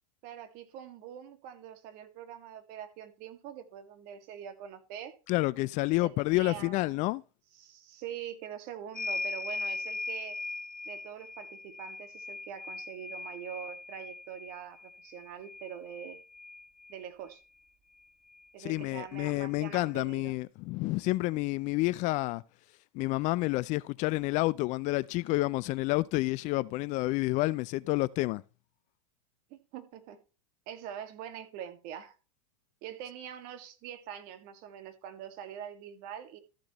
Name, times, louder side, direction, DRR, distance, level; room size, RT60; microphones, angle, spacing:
voice 1, 0.2-5.1 6.0-7.1 7.6-10.4 10.9-16.2 16.9-17.4 18.5-20.4 29.5-30.2 30.7-32.2 32.8-36.4, right 9 dB, 50° right, 1.9 m, -44 dB
voice 2, 5.3-7.2 18.6-22.4 22.9-28.4, left 20 dB, 40° left, 0.4 m, -29 dB
sound 1, 8.9-17.1 18.3-18.4 18.7-19.8, left 3 dB, 5° left, 1.8 m, -40 dB
13.5 x 7.6 x 3.0 m
hypercardioid pair, 115°, 19 cm